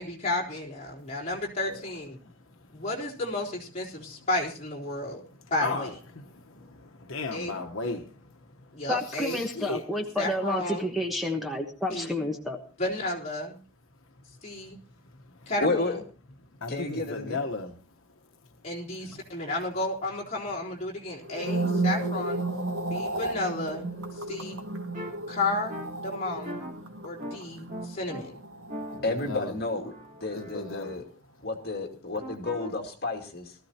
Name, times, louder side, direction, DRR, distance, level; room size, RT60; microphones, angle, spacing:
voice 1, 0.0-2.2 2.7-5.2 5.5-5.9 7.3-7.6 8.7-9.5 10.2-10.9 11.9-12.3 12.8-13.6 14.4-14.8 15.5-16.0 18.6-22.4 22.9-23.8 24.1-24.6 25.3-25.7 26.0-26.6 27.0-28.4, left 2 dB, 30° left, 3.7 m, -32 dB
voice 2, 2.2-2.5 5.6-8.8 9.2-9.8 15.3-15.5 16.6-17.7 19.0-19.2 22.8-23.2 24.2-25.3 28.9-29.5 30.3-31.0, left 3 dB, 75° left, 1.2 m, -37 dB
voice 3, 8.9-12.6, left 1 dB, ahead, 1.2 m, -30 dB
voice 4, 15.6-16.0 16.7-17.4 29.0-29.9 30.2-31.0 31.4-33.6, left 2 dB, 45° left, 2.2 m, -31 dB
sound 1, 21.2-29.6 29.9-30.2, right 2 dB, 80° right, 1.9 m, -33 dB
sound 2, 24.9-25.1 25.7-25.9 26.4-26.7 27.2-27.4 27.7-28.2 28.7-30.9 32.2-32.7, left 1 dB, 35° right, 3.6 m, -40 dB
19.5 x 14.0 x 2.9 m
head